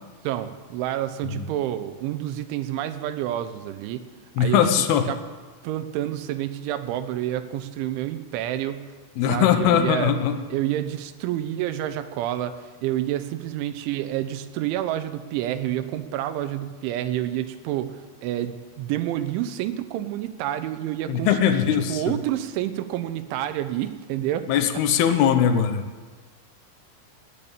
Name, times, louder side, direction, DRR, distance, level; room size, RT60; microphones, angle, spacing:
voice 1, 0.2-4.1 4.4-4.6 5.1-5.2 5.6-8.9 9.3-10.1 10.5-24.5, right 12 dB, 80° right, 11 dB, 3.1 m, -29 dB
voice 2, 4.4-5.1 9.2-10.4 21.1-22.1 24.5-25.9, left 8 dB, 75° left, 7 dB, 2.4 m, -20 dB
19.5 x 7.0 x 8.8 m, 1.4 s
omnidirectional pair, 5.6 m